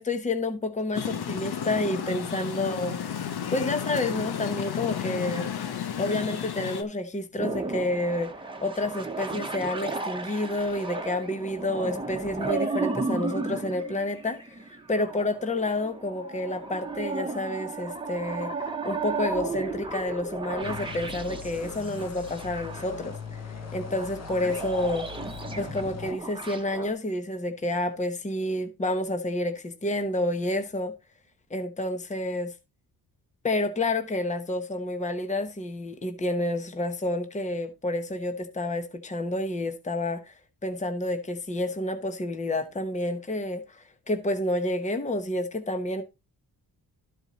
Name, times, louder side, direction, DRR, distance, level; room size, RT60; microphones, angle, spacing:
voice 1, 0.0-3.0 3.5-5.5 6.0-8.3 8.6-23.4 23.7-25.1 25.6-30.9 31.5-32.5 33.4-40.3 40.6-46.0, left 1 dB, 20° left, 1.0 m, -29 dB
sound 1, 0.9-6.8, left 8 dB, 80° left, 1.1 m, -32 dB
sound 2, 7.4-26.9, right 3 dB, 15° right, 1.2 m, -34 dB
sound 3, 20.6-26.1, left 8 dB, 45° left, 0.6 m, -41 dB
12.5 x 4.5 x 4.1 m
cardioid pair, 105°, 38 cm